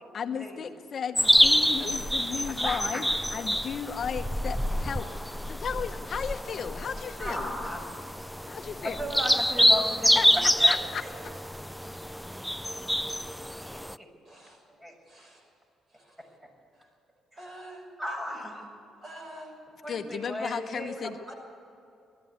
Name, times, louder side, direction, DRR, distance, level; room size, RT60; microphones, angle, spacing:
voice 1, 0.1-3.0 3.3-7.5 8.5-9.0 10.1-10.3 10.7-11.0 11.6-11.7 19.9-21.2, left 7 dB, 50° left, 7 dB, 1.0 m, -35 dB
sound 1, 1.2-13.9, equal, ahead, 0.5 m, -27 dB
voice 2, 2.5-3.0 7.2-7.8 8.8-11.1 14.0-14.1 14.8-15.3 18.0-18.8 19.8-21.1, equal, 15° right, 2 dB, 6.4 m, -35 dB
voice 3, 14.2-14.7 15.1-15.5 15.9-16.3 16.7-16.9 17.3-17.9 19.0-19.8 21.3-21.4, right 1 dB, 40° right, 2 dB, 6.2 m, -47 dB
20.5 x 14.0 x 9.6 m, 2.6 s
cardioid pair, 90°, 0 cm